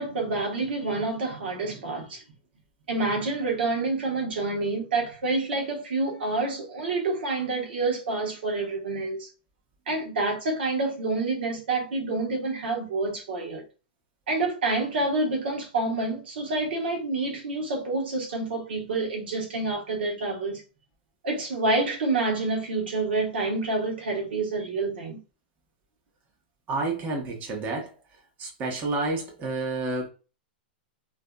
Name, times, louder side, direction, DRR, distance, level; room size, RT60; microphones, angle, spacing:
voice 1, 0.0-2.2 2.9-9.3 9.9-13.6 14.3-20.6 21.2-25.2, right 3 dB, 75° right, 1.2 m, -28 dB
voice 2, 26.7-27.9 28.4-30.1, right 3 dB, 30° right, 1.0 m, -29 dB
2.6 x 2.5 x 2.2 m
hypercardioid pair, 125°, 5 cm